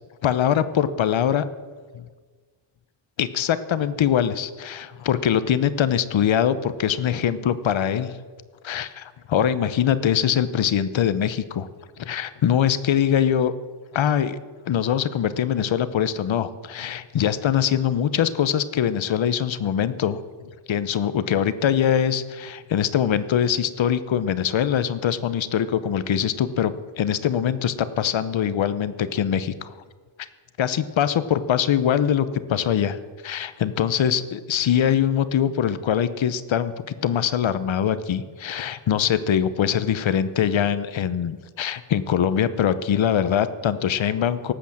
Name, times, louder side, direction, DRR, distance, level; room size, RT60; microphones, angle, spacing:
voice 1, 0.2-1.4 1.9-2.1 3.2-8.2 8.6-11.7 12.0-13.5 13.9-14.4 14.7-20.2 20.7-29.7 30.6-33.0 33.2-44.5, left 9 dB, 80° left, 14 dB, 0.9 m, -23 dB
18.0 x 8.2 x 7.2 m, 1.5 s
wide cardioid pair, 160°, 46 cm